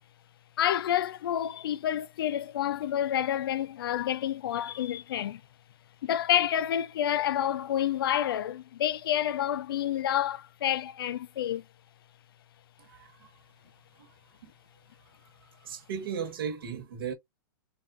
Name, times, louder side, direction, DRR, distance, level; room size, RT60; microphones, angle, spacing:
voice 1, 0.6-5.4 6.0-11.6, left 11 dB, 80° left, 0.4 m, -29 dB
voice 2, 12.8-13.3 14.0-14.1 14.4-14.5 15.4-17.1, right 7 dB, 75° right, 1.3 m, -37 dB
3.5 x 2.3 x 2.5 m
hypercardioid pair, 150°, 12 cm